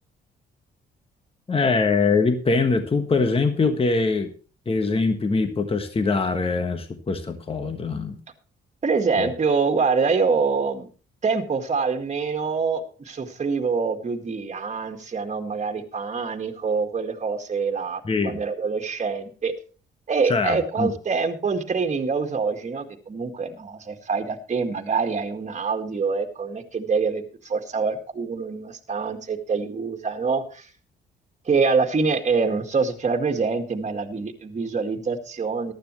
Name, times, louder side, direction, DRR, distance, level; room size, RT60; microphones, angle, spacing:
voice 1, 1.5-4.3 4.7-8.2 9.2-9.3 18.0-18.4 20.3-20.9, left 4 dB, 30° left, 7 dB, 1.4 m, -23 dB
voice 2, 8.8-10.9 11.2-19.5 20.1-30.7 31.5-35.7, right 5 dB, 35° right, 5 dB, 1.9 m, -25 dB
15.0 x 12.0 x 3.1 m, 0.38 s
cardioid pair, 90°, 20 cm